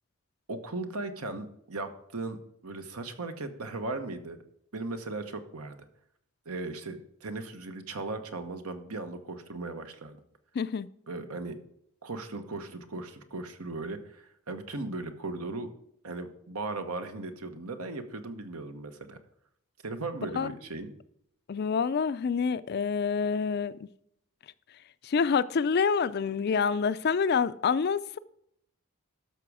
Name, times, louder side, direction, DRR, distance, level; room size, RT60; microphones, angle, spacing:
voice 1, 0.5-4.4 4.7-5.8 6.4-10.2 11.1-11.6 12.0-15.7 16.0-19.2 19.8-20.9, right 2 dB, 80° right, 1.1 m, -37 dB
voice 2, 10.5-10.9 20.4-20.5 21.5-23.9 25.0-28.2, left 5 dB, 45° left, 0.4 m, -27 dB
12.5 x 6.1 x 4.8 m
head